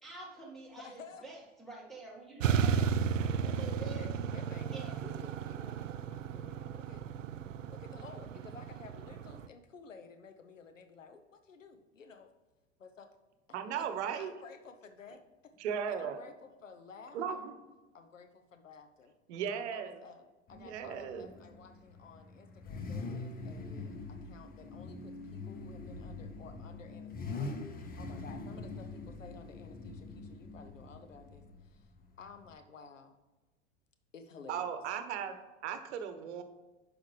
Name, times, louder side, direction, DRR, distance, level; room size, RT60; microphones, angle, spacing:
voice 1, 0.0-2.8 3.4-4.1 4.7-5.0, right 3 dB, ahead, -5 dB, 1.8 m, -47 dB
voice 2, 0.8-1.3 2.7-2.9 3.8-7.0 7.7-12.3 12.8-13.1 13.5-13.9 14.1-15.6 15.9-17.5 17.9-19.2 19.7-31.9 32.2-33.2 34.1-34.7, left 5 dB, 85° left, 8 dB, 0.9 m, -53 dB
sound 1, 2.4-9.5, right 7 dB, 80° right, 0.5 m, -34 dB
voice 3, 13.5-14.3 15.6-16.2 17.1-17.5 19.3-20.0 20.5-21.3 34.5-36.4, right 7 dB, 65° right, 9 dB, 1.0 m, -37 dB
Car / Idling / Accelerating revving vroom, 20.5-32.6, left 3 dB, 25° left, 1.0 m, -44 dB
9.6 x 5.1 x 3.2 m, 1.2 s
figure-of-eight pair, 80°, 37 cm